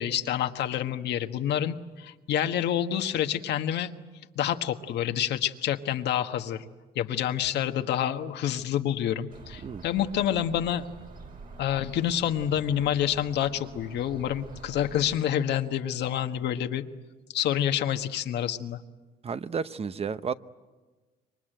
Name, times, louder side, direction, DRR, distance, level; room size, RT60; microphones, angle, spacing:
voice 1, 0.0-3.9 4.3-6.6 6.9-10.9 11.6-16.8 17.3-18.8, left 10 dB, 80° left, 7 dB, 1.4 m, -28 dB
sound 1, 9.3-15.2, right 3 dB, 55° right, 4.9 m, -47 dB
voice 2, 19.2-20.3, right 6 dB, 35° right, 13 dB, 0.8 m, -32 dB
27.0 x 23.5 x 9.2 m, 1.3 s
cardioid pair, 100°, 17 cm